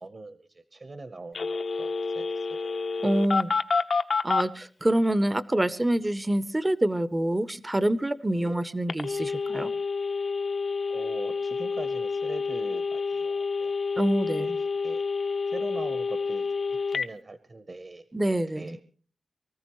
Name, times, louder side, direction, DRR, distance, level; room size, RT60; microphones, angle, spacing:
voice 1, 0.0-2.8 3.3-3.4 8.3-8.6 10.9-13.8 14.4-18.8, right 2 dB, 45° right, 11 dB, 0.9 m, -43 dB
Telephone, 1.3-4.5 8.9-17.1, left 4 dB, 70° left, 0.8 m, -29 dB
voice 2, 3.0-3.5 4.2-9.7 14.0-14.6 18.1-18.8, right 1 dB, 20° right, 15 dB, 0.6 m, -26 dB
24.0 x 14.0 x 3.0 m, 0.43 s
wide cardioid pair, 100°, 0 cm